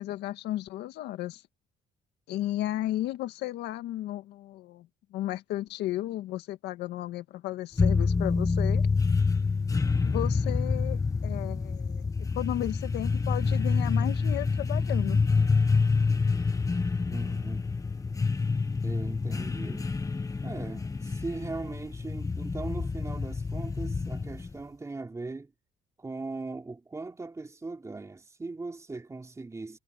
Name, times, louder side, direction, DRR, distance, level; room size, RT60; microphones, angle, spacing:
voice 1, 0.0-1.4 2.3-4.9 5.1-8.9 10.0-12.1 12.4-15.2, left 14 dB, 80° left, 1.8 m, -34 dB
sound 1, 7.8-24.6, left 4 dB, 20° left, 1.3 m, -27 dB
voice 2, 17.1-17.6 18.8-19.9 20.4-25.5 26.0-29.8, right 3 dB, 15° right, 3.3 m, -39 dB
cardioid pair, 110°, 17 cm